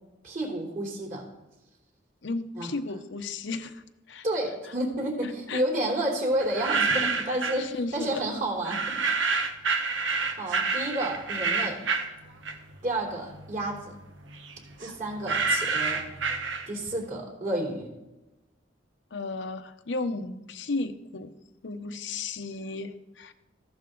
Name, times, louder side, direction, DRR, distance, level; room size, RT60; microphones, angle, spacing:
voice 1, 0.2-1.3 2.5-2.7 4.2-9.0 10.3-11.8 12.8-14.0 14.8-16.1 16.7-17.9, right 1 dB, 45° right, 0 dB, 3.4 m, -30 dB
voice 2, 2.2-4.2 5.2-5.6 7.3-8.2 9.1-9.6 19.1-21.3 21.6-23.3, left 3 dB, 75° left, 8 dB, 0.8 m, -34 dB
sound 1, 6.4-7.7 8.6-12.9 13.2-17.0, right 4 dB, 90° right, 1.2 m, -28 dB
15.0 x 11.5 x 3.9 m, 1.0 s
head